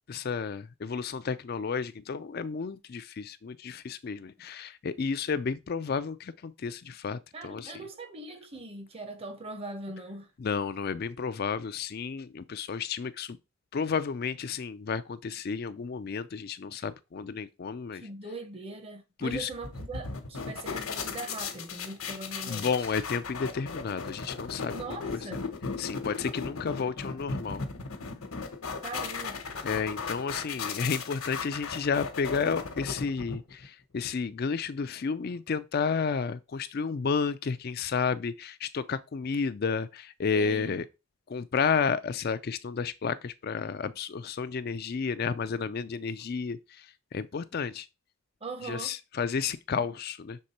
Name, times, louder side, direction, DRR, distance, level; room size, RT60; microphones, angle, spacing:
voice 1, 0.1-7.7 10.4-13.4 13.7-18.0 19.2-19.5 22.5-24.7 25.1-25.2 25.8-27.7 29.6-40.9 41.3-47.9 48.6-50.4, left 5 dB, 45° left, 0.4 m, -31 dB
voice 2, 7.3-10.3 18.0-22.7 24.7-25.5 28.8-29.4 40.3-40.8 48.4-48.9, right 2 dB, 25° right, 0.8 m, -41 dB
sound 1, 19.3-33.7, left 4 dB, 75° left, 1.1 m, -37 dB
6.5 x 3.6 x 4.2 m
head